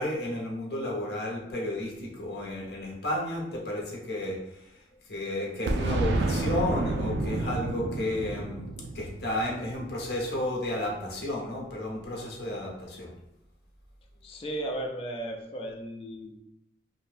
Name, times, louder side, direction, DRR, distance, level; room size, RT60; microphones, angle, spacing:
voice 1, 0.0-4.4 5.1-8.6 8.9-13.1, left 1 dB, 65° left, -2 dB, 0.8 m, -32 dB
Boom, 5.7-10.3, right 2 dB, 70° right, 0.3 m, -30 dB
voice 2, 14.2-16.4, right 1 dB, 30° left, 1 dB, 0.4 m, -35 dB
2.6 x 2.2 x 3.2 m, 0.84 s
head